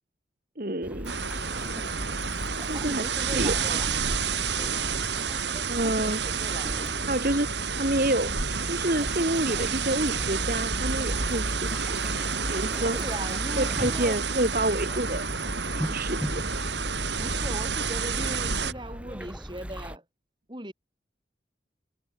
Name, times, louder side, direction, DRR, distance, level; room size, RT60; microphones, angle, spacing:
voice 1, 0.6-1.1 2.7-3.1 3.3-3.8 5.7-6.2 7.1-8.3 8.6-12.0 12.5-13.0 13.6-15.3 15.9-16.4, right 1 dB, 50° right, 2.5 m, -28 dB
sound 1, 0.8-20.0, equal, 5° right, 3.7 m, -36 dB
sound 2, 1.1-18.7, right 6 dB, 85° right, 5.2 m, -30 dB
voice 2, 2.7-3.9 5.8-6.9 12.9-14.2 17.2-20.0 20.5-20.7, right 1 dB, 25° right, 6.5 m, -38 dB
head